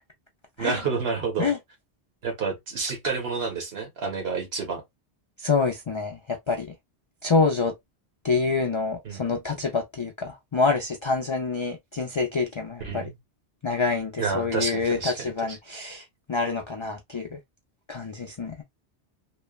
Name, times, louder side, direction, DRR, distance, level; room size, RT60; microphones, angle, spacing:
voice 1, 0.6-1.5 2.2-4.8 9.0-9.2 12.8-13.2 14.2-15.6, right 5 dB, 65° right, 1.2 m, -29 dB
voice 2, 5.4-6.7 7.2-7.7 8.2-13.1 13.6-16.0 16.3-17.4 17.9-18.5, left 4 dB, 50° left, 0.3 m, -26 dB
3.1 x 2.1 x 2.3 m
omnidirectional pair, 1.1 m